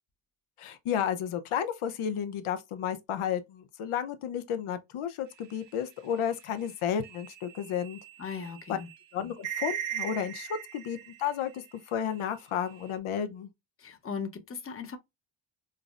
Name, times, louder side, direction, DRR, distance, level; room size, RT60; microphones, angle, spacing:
voice 1, 0.6-8.0 8.7-8.8 9.1-13.5, left 8 dB, 85° left, 0.7 m, -32 dB
sound 1, 5.4-11.7 12.1-13.0, right 9 dB, 60° right, 0.8 m, -40 dB
voice 2, 8.2-8.9 13.8-15.0, left 6 dB, 25° left, 0.7 m, -38 dB
5.4 x 2.0 x 2.4 m
cardioid pair, 115°, 48 cm